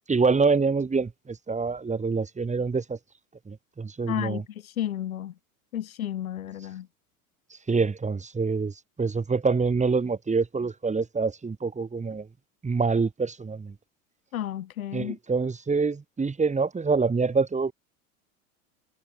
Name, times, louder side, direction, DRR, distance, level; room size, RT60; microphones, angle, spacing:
voice 1, 0.1-3.0 3.5-4.4 7.7-12.3 12.6-13.7 14.9-17.7, right 4 dB, 15° right, 4.2 m, -26 dB
voice 2, 4.1-5.3 5.7-6.9 14.3-15.2, left 11 dB, 75° left, 5.1 m, -32 dB
hypercardioid pair, 85°, 42 cm